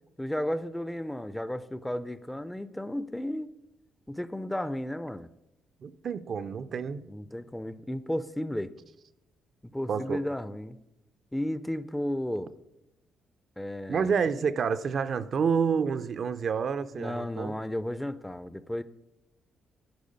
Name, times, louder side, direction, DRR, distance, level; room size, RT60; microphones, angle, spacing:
voice 1, 0.2-3.5 4.1-5.3 7.1-8.7 9.6-10.8 11.3-12.5 13.6-14.1 16.9-18.8, left 1 dB, 5° left, 15 dB, 0.4 m, -33 dB
voice 2, 5.8-7.0 9.9-10.2 13.9-17.5, right 6 dB, 55° right, 12 dB, 0.4 m, -28 dB
10.5 x 4.9 x 5.2 m, 0.90 s
cardioid pair, 90°, 0 cm